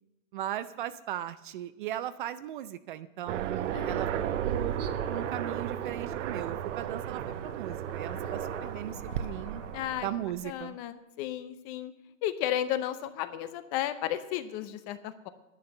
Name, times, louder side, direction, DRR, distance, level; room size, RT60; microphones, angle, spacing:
voice 1, 0.3-4.1 4.4-7.2 7.5-9.6 10.0-10.8, right 12 dB, 40° right, 14 dB, 0.4 m, -37 dB
Aircraft, 3.3-10.3, right 10 dB, 65° right, 1.0 m, -34 dB
voice 2, 3.7-4.6 9.7-10.1 10.4-11.9 12.2-15.3, left 12 dB, 30° left, 12 dB, 0.6 m, -34 dB
sound 1, 4.8-10.5, left 5 dB, 80° left, 2.0 m, -50 dB
10.5 x 9.2 x 6.6 m, 0.95 s
hypercardioid pair, 150°, 40 cm